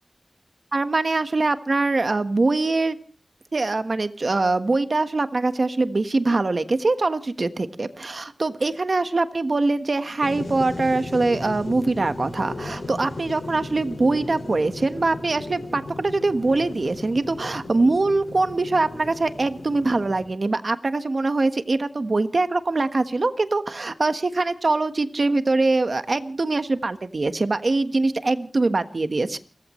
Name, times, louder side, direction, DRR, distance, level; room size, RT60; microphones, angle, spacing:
voice 1, 0.7-3.0 3.5-29.4, right 3 dB, 65° right, 9 dB, 1.4 m, -23 dB
sound 1, 10.2-20.2, left 2 dB, 85° left, 7.5 m, -36 dB
29.5 x 15.0 x 3.1 m, 0.37 s
cardioid pair, 40°, 0 cm